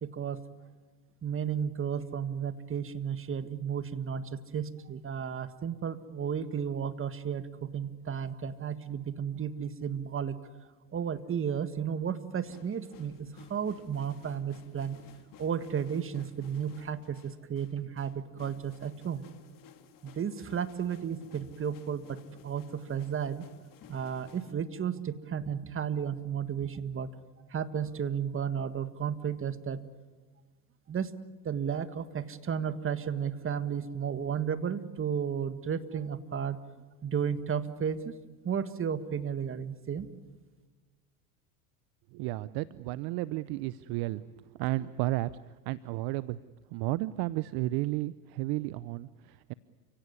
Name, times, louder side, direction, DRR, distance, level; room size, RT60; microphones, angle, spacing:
voice 1, 0.0-0.4 1.2-10.4 10.9-15.0 15.4-19.3 20.0-23.4 23.9-27.1 27.5-29.8 30.9-31.1 31.4-36.6 37.0-38.2 38.4-40.1, right 7 dB, 25° right, 12 dB, 1.7 m, -33 dB
sound 1, 12.4-24.5, left 7 dB, 40° left, 2.5 m, -56 dB
voice 2, 42.1-46.4 46.7-49.5, right 17 dB, 50° right, 17 dB, 0.7 m, -33 dB
30.0 x 17.0 x 9.6 m, 1.3 s
hypercardioid pair, 95°, 49 cm